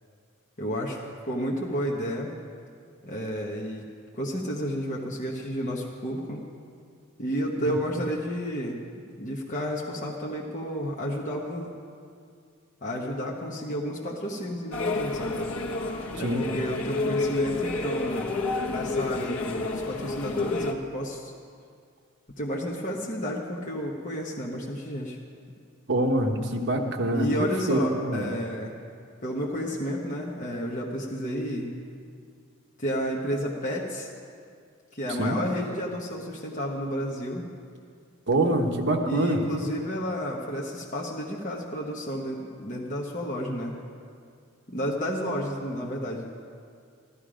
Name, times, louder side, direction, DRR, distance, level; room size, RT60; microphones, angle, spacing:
voice 1, 0.6-2.3 3.0-3.9 4.1-6.4 7.2-8.8 9.2-11.7 12.8-15.5 16.2-18.4 18.7-21.3 22.4-25.2 27.1-28.8 29.2-31.7 32.8-34.1 34.9-37.4 39.0-43.8 44.7-46.3, equal, 35° left, -2 dB, 1.1 m, -31 dB
sound 1, 14.7-20.7, left 3 dB, 80° left, 1.1 m, -30 dB
voice 2, 25.9-28.3 35.2-35.4 38.3-39.4, right 1 dB, 55° right, 2 dB, 1.2 m, -25 dB
14.5 x 13.0 x 5.0 m, 2.2 s
head